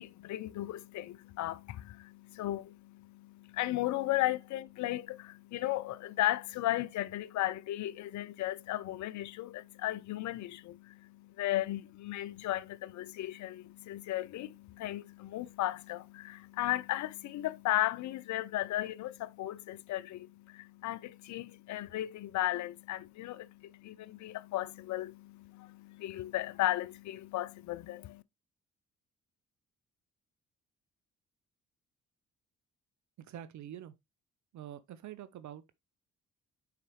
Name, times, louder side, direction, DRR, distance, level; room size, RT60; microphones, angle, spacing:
voice 1, 0.0-28.2, left 15 dB, 50° left, 0.5 m, -35 dB
voice 2, 33.2-33.9 34.5-35.6, right 11 dB, 50° right, 0.7 m, -46 dB
6.8 x 4.9 x 3.1 m
figure-of-eight pair, 40°, 38 cm